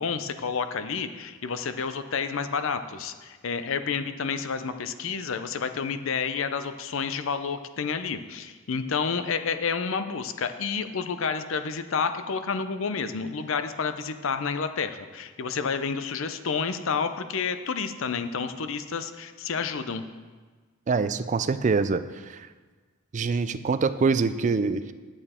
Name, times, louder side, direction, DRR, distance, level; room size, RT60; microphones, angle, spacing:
voice 1, 0.0-20.0, left 5 dB, 65° left, 10 dB, 0.6 m, -30 dB
voice 2, 20.9-22.5 23.1-24.9, right 4 dB, 35° right, 13 dB, 0.3 m, -25 dB
8.8 x 8.8 x 4.3 m, 1.4 s
head